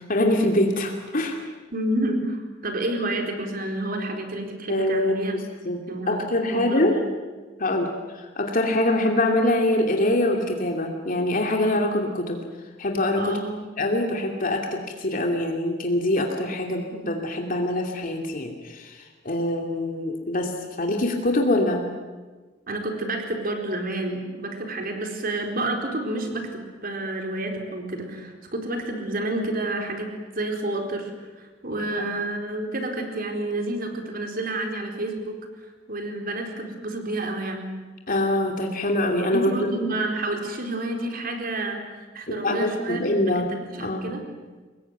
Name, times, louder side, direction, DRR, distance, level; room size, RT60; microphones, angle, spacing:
voice 1, 0.0-1.4 4.7-5.1 5.7-5.8 6.1-7.0 7.6-12.4 12.8-13.4 13.8-19.0 19.2-20.5 20.8-21.9 32.0-32.1 38.1-39.7 42.3-44.1, left 1 dB, 45° left, 2 dB, 2.7 m, -24 dB
voice 2, 1.7-5.4 5.9-7.1 13.2-13.5 22.7-30.1 30.3-31.1 31.4-35.3 35.9-37.7 39.3-44.2, right 1 dB, 50° right, 3 dB, 4.3 m, -29 dB
25.0 x 21.0 x 9.4 m, 1.3 s
head